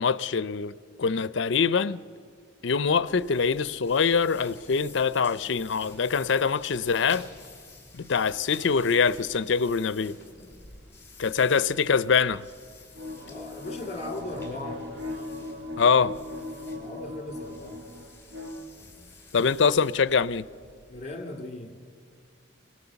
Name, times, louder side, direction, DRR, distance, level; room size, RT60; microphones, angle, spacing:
voice 1, 0.0-2.0 2.6-7.3 7.9-10.2 11.2-12.4 15.8-16.2 19.3-20.4, left 5 dB, 65° left, 0.5 m, -24 dB
sound 1, 2.7-21.2, left 3 dB, 10° left, 2.9 m, -50 dB
sound 2, 13.0-18.6, left 2 dB, 55° right, 2.2 m, -38 dB
voice 2, 13.2-14.9 16.7-18.0 20.9-21.8, left 2 dB, 35° left, 1.9 m, -38 dB
24.5 x 18.5 x 7.0 m
head